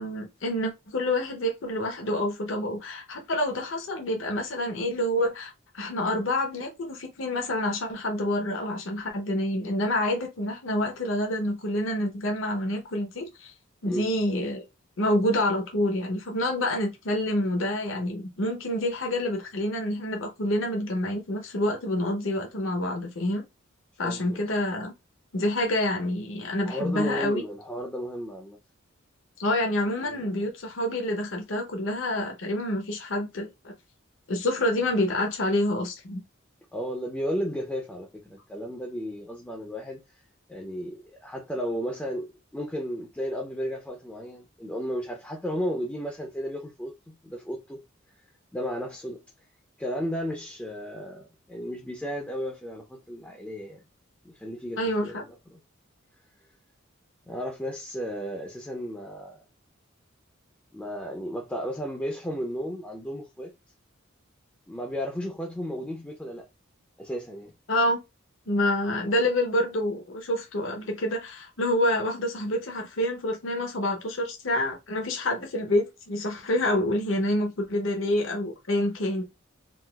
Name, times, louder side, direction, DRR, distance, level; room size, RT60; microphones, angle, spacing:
voice 1, 0.0-13.5 13.8-14.6 15.0-23.4 24.0-24.9 25.3-27.4 29.4-33.7 34.3-36.2 54.8-55.2 67.7-68.0 68.5-79.2, left 1 dB, 70° left, 0.8 m, -27 dB
voice 2, 24.0-24.4 26.6-28.6 30.0-30.5 36.7-40.0 40.5-47.8 48.5-49.2 49.8-53.8 54.2-55.6 57.3-59.4 60.7-63.5 64.7-66.5 67.0-67.5, equal, 5° left, 0.4 m, -34 dB
3.9 x 2.3 x 2.2 m
head